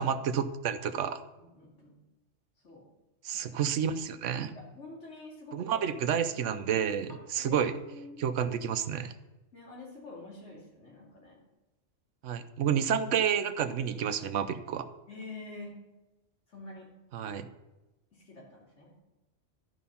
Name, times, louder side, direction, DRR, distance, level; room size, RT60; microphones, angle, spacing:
voice 1, 0.0-1.2 3.2-4.5 5.5-7.7 8.2-9.1 12.2-14.9 17.1-17.5, right 8 dB, 85° right, 11 dB, 1.0 m, -30 dB
voice 2, 1.4-2.0 2.6-2.9 3.3-4.0 4.5-5.9 7.1-7.2 7.4-8.2 9.5-11.4 15.1-15.8 16.5-16.9 18.1-19.0, left 2 dB, 75° left, -4 dB, 3.1 m, -47 dB
12.5 x 5.1 x 5.6 m, 1.0 s
omnidirectional pair, 1.3 m